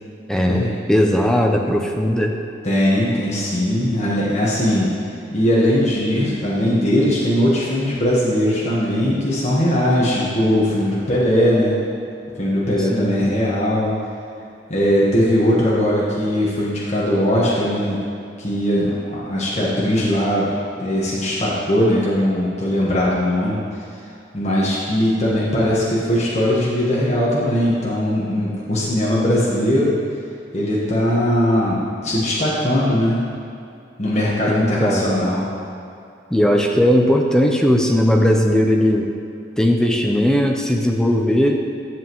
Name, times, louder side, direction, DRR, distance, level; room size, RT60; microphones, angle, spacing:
voice 1, 0.3-2.3 12.9-13.2 34.5-35.2 36.3-39.1 39.6-41.6, equal, 5° left, 2 dB, 0.6 m, -18 dB
voice 2, 2.6-4.9 5.3-11.8 12.4-13.9 14.7-18.0 18.4-20.5 20.8-23.6 24.3-30.0 30.5-33.2 34.0-35.5, equal, 40° left, -7 dB, 1.4 m, -19 dB
11.0 x 7.2 x 3.1 m, 2.6 s
head